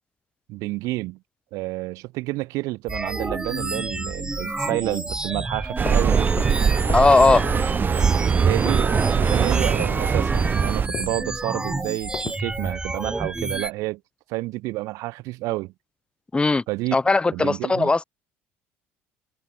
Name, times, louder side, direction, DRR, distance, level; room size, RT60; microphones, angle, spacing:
voice 1, 0.5-1.2 1.5-6.3 8.4-14.0 14.3-15.7 16.7-17.0 17.3-17.9, right 21 dB, 75° right, 4.1 m, -29 dB
sound 1, 2.9-13.7, right 2 dB, 15° right, 3.0 m, -30 dB
sound 2, 5.6-7.2 7.4-7.7 8.0-8.9 9.2-9.4 9.8-12.5, left 8 dB, 45° left, 1.6 m, -36 dB
sound 3, 5.8-10.9, right 6 dB, 35° right, 1.8 m, -21 dB
voice 2, 6.9-7.5 16.3-16.6 16.9-18.0, left 3 dB, 20° left, 2.1 m, -18 dB
supercardioid pair, 85°, 6 cm